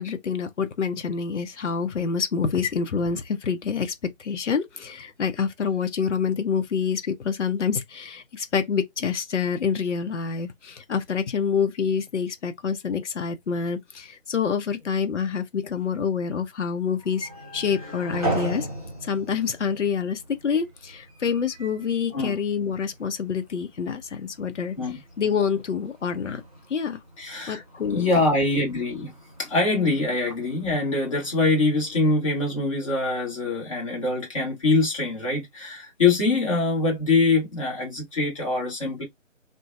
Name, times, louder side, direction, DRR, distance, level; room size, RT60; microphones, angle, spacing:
voice 1, 0.0-18.7 19.0-24.8 25.2-26.4 26.7-27.0 27.5-28.0, left 6 dB, 65° left, 0.7 m, -27 dB
sound 1, 16.9-32.2, right 1 dB, 30° right, 0.8 m, -39 dB
voice 2, 27.2-27.6 27.9-29.1 29.4-39.0, left 3 dB, 25° left, 1.2 m, -24 dB
2.5 x 2.2 x 2.4 m
figure-of-eight pair, 160°, 39 cm